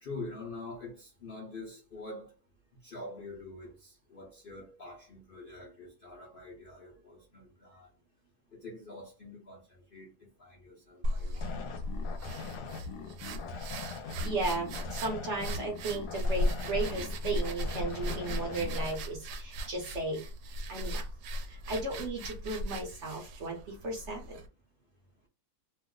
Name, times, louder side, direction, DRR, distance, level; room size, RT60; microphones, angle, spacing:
voice 1, 0.0-2.3 2.8-7.9 8.5-11.8, left 2 dB, 50° left, 0.7 m, -45 dB
sound 1, 11.0-24.5, equal, 85° right, 1.2 m, -37 dB
sound 2, 11.4-19.0, left 4 dB, 80° left, 1.1 m, -42 dB
voice 2, 14.2-20.2 20.7-21.1 21.5-24.4, right 2 dB, 55° right, 1.0 m, -35 dB
2.9 x 2.0 x 3.7 m
omnidirectional pair, 1.7 m